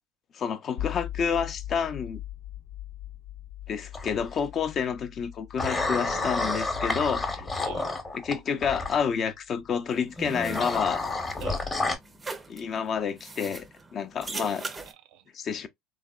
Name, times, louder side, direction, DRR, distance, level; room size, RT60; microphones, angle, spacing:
voice 1, 0.3-2.2 3.7-7.4 8.1-11.0 12.5-13.7 13.9-14.6 15.3-15.7, left 7 dB, 45° left, 0.4 m, -29 dB
sound 1, 0.8-10.8, left 12 dB, 85° left, 0.8 m, -42 dB
sound 2, 3.9-4.4 5.6-9.0 10.2-12.0, left 3 dB, 20° left, 0.8 m, -30 dB
voice 2, 5.8-6.6 7.6-8.0 11.4-11.8 14.3-15.2, right 10 dB, 75° right, 0.4 m, -43 dB
sound 3, 9.9-14.9, right 3 dB, 20° right, 0.4 m, -41 dB
3.2 x 2.0 x 2.2 m
supercardioid pair, 95°, 0 cm